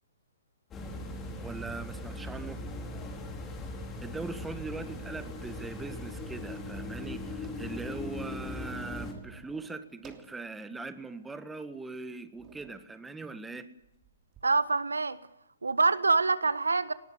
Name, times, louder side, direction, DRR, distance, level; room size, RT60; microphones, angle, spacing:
sound 1, 0.7-9.1, left 1 dB, 20° left, 4.8 m, -39 dB
voice 1, 1.4-2.6 4.0-13.7, right 3 dB, 5° right, 11 dB, 1.6 m, -41 dB
sound 2, 3.7-4.3 4.9-6.0 6.2-6.3 6.6-10.4 10.9-11.0 11.7-11.9 12.3-12.9 13.8-14.4, right 7 dB, 25° right, 3.0 m, -55 dB
voice 2, 14.4-15.2 15.6-16.9, right 3 dB, 80° right, 15 dB, 1.3 m, -25 dB
20.0 x 19.5 x 9.4 m, 0.86 s
figure-of-eight pair, 125°, 0 cm